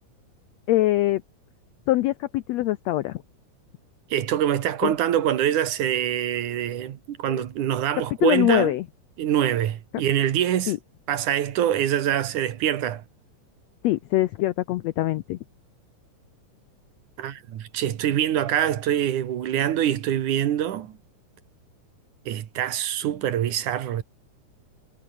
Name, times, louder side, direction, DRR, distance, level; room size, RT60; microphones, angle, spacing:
voice 1, 0.7-1.2 1.9-3.2 4.8-4.9 8.2-8.8 10.7-10.8 13.8-15.4, left 16 dB, 80° left, 1.5 m, -23 dB
voice 2, 4.1-8.7 9.2-10.7 11.1-13.0 17.2-21.0 22.3-24.0, right 11 dB, 70° right, 2.9 m, -24 dB
omnidirectional pair, 3.7 m